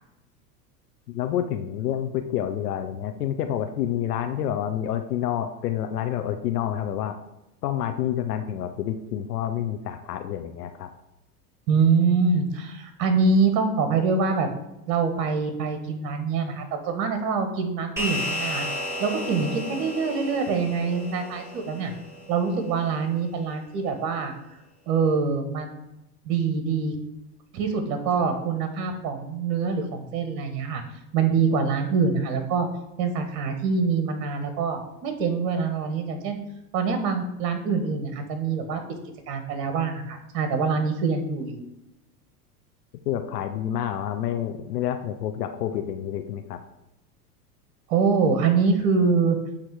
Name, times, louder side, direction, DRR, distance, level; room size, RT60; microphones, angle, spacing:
voice 1, 1.1-7.2 7.6-10.9 43.1-46.6, left 10 dB, 75° left, 7 dB, 0.7 m, -28 dB
voice 2, 11.7-14.5 14.9-18.7 19.0-21.9 22.3-24.6 24.9-25.7 26.2-27.0 27.5-30.8 31.1-32.7 33.0-36.4 36.7-38.8 39.3-41.6 47.9-49.4, right 5 dB, 60° right, 7 dB, 1.2 m, -24 dB
sound 1, 18.0-22.6, left 1 dB, 5° right, 2.1 m, -33 dB
8.7 x 2.9 x 4.6 m, 0.91 s
hypercardioid pair, 90°, 47 cm